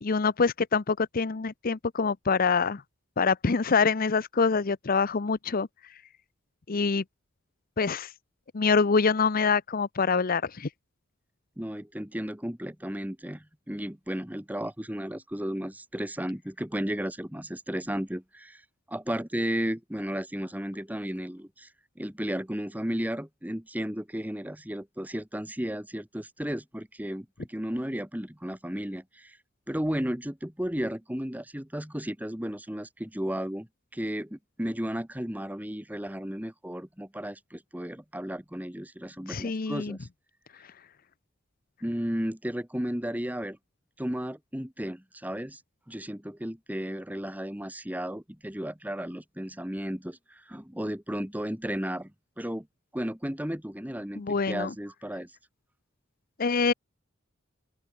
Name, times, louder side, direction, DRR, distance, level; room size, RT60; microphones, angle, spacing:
voice 1, 0.0-2.8 3.2-5.7 6.7-7.0 7.8-8.1 8.5-10.7 39.3-40.0 54.2-54.7 56.4-56.7, left 5 dB, 45° left, 0.7 m, -25 dB
voice 2, 11.6-18.6 18.9-21.7 22.0-29.4 29.7-40.0 41.8-43.6 44.0-45.6 45.9-52.1 52.4-52.7 52.9-55.3, equal, 10° right, 1.8 m, -34 dB
open air
head